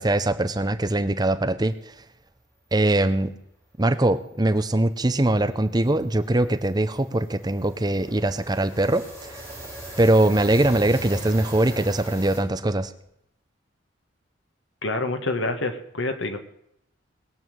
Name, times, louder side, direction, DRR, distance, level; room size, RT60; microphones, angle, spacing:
voice 1, 0.0-1.7 2.7-3.3 3.8-9.0 10.0-12.9, right 1 dB, 20° right, 10 dB, 0.7 m, -22 dB
sound 1, 4.0-4.1 4.4-4.6 4.9-12.4, right 1 dB, 15° left, 5.2 m, -40 dB
voice 2, 14.8-16.4, left 2 dB, 75° left, 7 dB, 1.6 m, -27 dB
20.0 x 7.2 x 7.9 m, 0.78 s
head